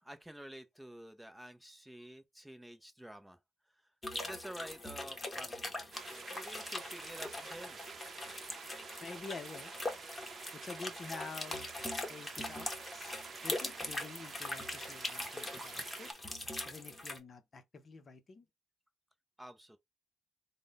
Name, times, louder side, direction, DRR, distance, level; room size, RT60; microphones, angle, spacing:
voice 1, 0.0-3.4 4.2-5.9 6.3-7.8 19.4-19.8, right 1 dB, 5° right, 0.6 m, -49 dB
sound 1, 4.0-17.2, left 2 dB, 20° left, 1.1 m, -42 dB
sound 2, 5.9-16.1, right 5 dB, 50° right, 0.7 m, -49 dB
voice 2, 9.0-9.7 10.5-11.7 12.1-13.2 13.4-16.1 16.6-18.5, left 4 dB, 40° left, 0.7 m, -48 dB
3.7 x 2.1 x 3.5 m
cardioid pair, 90°, 0 cm